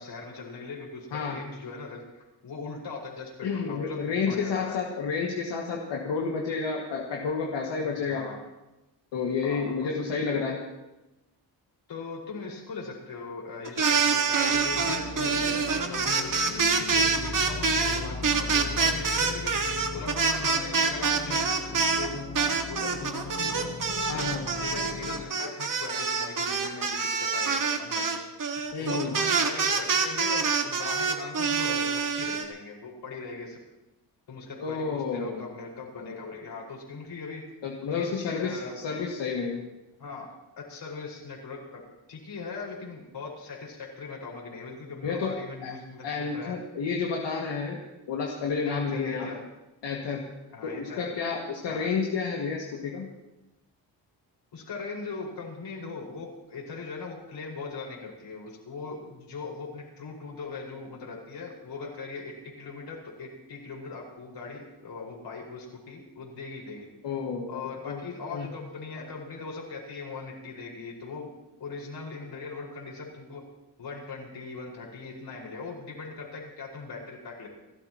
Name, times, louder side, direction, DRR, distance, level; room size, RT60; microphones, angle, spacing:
voice 1, 0.0-4.8 7.8-8.4 9.4-10.5 11.9-19.5 19.9-21.5 21.8-23.7 24.6-28.2 28.8-33.6 34.3-37.4 37.9-38.7 40.0-40.3 40.6-41.8 42.1-46.6 48.7-49.4 50.5-51.1 51.7-51.9 54.5-66.9 67.5-71.3 71.6-73.4 73.8-77.5, left 4 dB, 70° left, -2 dB, 5.6 m, -40 dB
voice 2, 3.4-8.3 9.1-10.6 24.1-24.5 28.7-29.1 34.6-35.5 37.6-39.6 45.0-45.4 45.6-45.7 46.0-47.8 48.1-49.3 49.8-50.2 50.6-53.1 67.0-67.6 67.9-68.0 68.3-68.5, left 5 dB, 85° left, -2 dB, 2.3 m, -30 dB
sound 1, 13.7-22.1 22.4-32.4, right 5 dB, 50° right, 1.8 m, -26 dB
sound 2, 14.5-25.3, left 4 dB, 45° left, 1.6 m, -38 dB
29.5 x 13.0 x 3.1 m, 1.0 s
cardioid pair, 110°, 42 cm